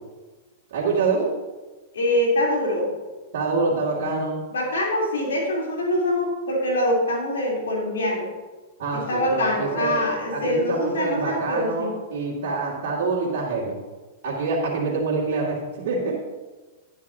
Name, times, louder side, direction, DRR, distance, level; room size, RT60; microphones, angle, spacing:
voice 1, 0.7-1.3 3.3-4.4 8.8-10.0 10.3-13.8 14.2-16.1, right 4 dB, 65° right, -7 dB, 2.4 m, -25 dB
voice 2, 1.9-2.9 4.5-8.3 8.9-11.9, left 1 dB, 85° left, -3 dB, 3.4 m, -24 dB
11.0 x 10.0 x 2.8 m, 1.2 s
hypercardioid pair, 115°, 0 cm